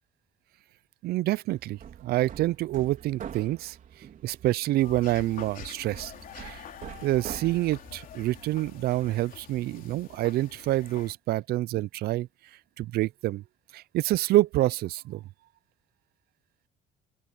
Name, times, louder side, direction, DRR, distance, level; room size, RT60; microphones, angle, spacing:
voice 1, 1.0-3.8 4.2-6.6 7.0-12.3 12.8-13.4 13.7-15.2, right 16 dB, 70° right, 0.5 m, -27 dB
Hammer, 1.5-9.3, right 9 dB, 50° right, 3.8 m, -46 dB
sound 1, 4.8-11.1, left 9 dB, 55° left, 3.6 m, -46 dB
open air
cardioid pair, 110°, 17 cm